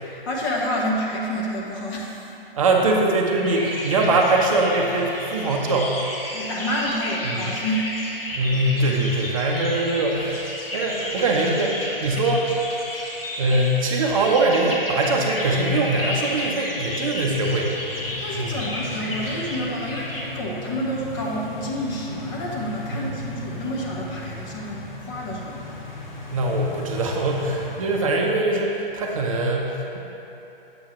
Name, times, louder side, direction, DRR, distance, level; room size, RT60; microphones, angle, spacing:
voice 1, 0.0-2.3 6.3-7.9 18.2-25.9, equal, 25° left, -3 dB, 0.7 m, -29 dB
voice 2, 2.6-6.0 7.2-7.5 8.3-12.5 13.4-17.7 18.4-18.6 22.9-23.0 26.3-30.0, right 2 dB, 35° right, 0 dB, 0.7 m, -22 dB
sound 1, 3.4-20.3, left 1 dB, 75° left, 1.4 m, -32 dB
sound 2, 17.4-28.0, left 2 dB, 50° left, 1.2 m, -37 dB
7.7 x 7.1 x 3.0 m, 2.9 s
figure-of-eight pair, 135°, 29 cm